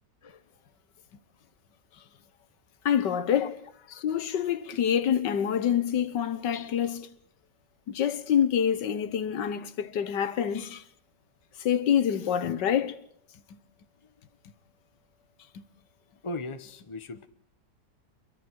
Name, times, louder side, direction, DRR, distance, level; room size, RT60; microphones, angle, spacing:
voice 1, 2.8-3.5 4.0-7.1 7.9-10.8 11.6-13.0 13.5-13.6 15.5-15.6, left 9 dB, 85° left, 1.7 m, -26 dB
voice 2, 16.2-17.3, left 2 dB, 25° left, 0.8 m, -38 dB
28.0 x 23.5 x 4.7 m
omnidirectional pair, 1.9 m